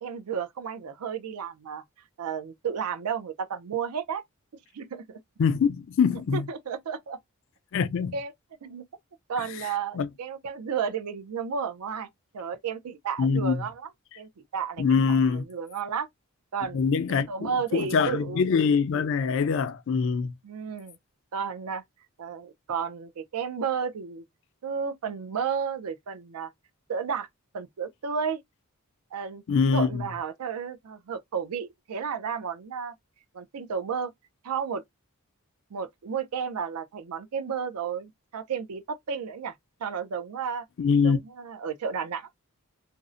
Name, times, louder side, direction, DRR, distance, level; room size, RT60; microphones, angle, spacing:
voice 1, 0.0-1.8 2.2-4.2 4.7-5.2 6.3-7.2 8.1-8.3 8.6-8.9 9.3-12.1 12.3-13.9 14.2-16.1 16.5-16.8 17.3-18.4 20.4-21.0 21.3-21.8 22.2-24.2 24.6-26.5 26.9-27.3 27.5-28.4 29.1-29.4 29.7-32.9 33.3-34.1 34.4-34.8 35.7-39.5 39.8-40.6 41.0-42.3, right 6 dB, 85° right, 0.4 m, -32 dB
voice 2, 5.4-6.5 7.7-8.2 10.0-10.1 13.2-13.6 14.8-15.5 16.7-20.3 29.5-30.0 40.8-41.2, left 5 dB, 60° left, 0.3 m, -24 dB
2.5 x 2.0 x 2.4 m
head